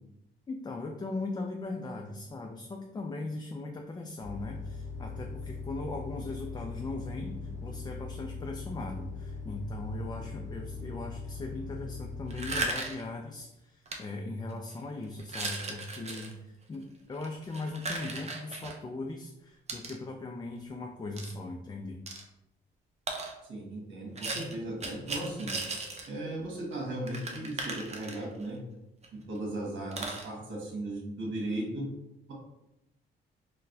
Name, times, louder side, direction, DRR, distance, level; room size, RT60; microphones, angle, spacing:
voice 1, 0.5-22.0, left 2 dB, 20° left, 2 dB, 0.3 m, -39 dB
sound 1, 4.2-12.7, left 4 dB, 85° left, 0.6 m, -40 dB
sound 2, 12.3-13.1 13.8-14.0 14.5-14.7 15.2-16.3 17.1-18.8 19.7-20.0 21.2-21.3 22.1-22.2 23.1-23.3 24.1-26.1 26.4-26.5 26.7-26.8 27.1-28.5 29.0-29.1 29.3-29.4 29.9-30.3, right 2 dB, 35° right, 0.6 m, -36 dB
voice 2, 23.5-25.5 26.1-28.6 29.3-31.9, right 1 dB, 70° right, -2 dB, 1.4 m, -36 dB
4.0 x 2.2 x 2.6 m, 0.89 s
cardioid pair, 90°, 20 cm